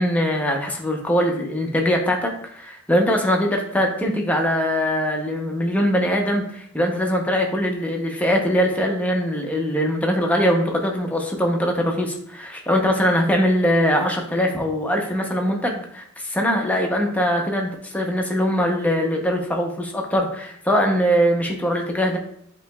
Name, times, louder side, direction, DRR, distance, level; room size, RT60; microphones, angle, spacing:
voice 1, 0.0-22.2, equal, 5° left, 1 dB, 0.7 m, -22 dB
8.1 x 2.9 x 2.2 m, 0.70 s
head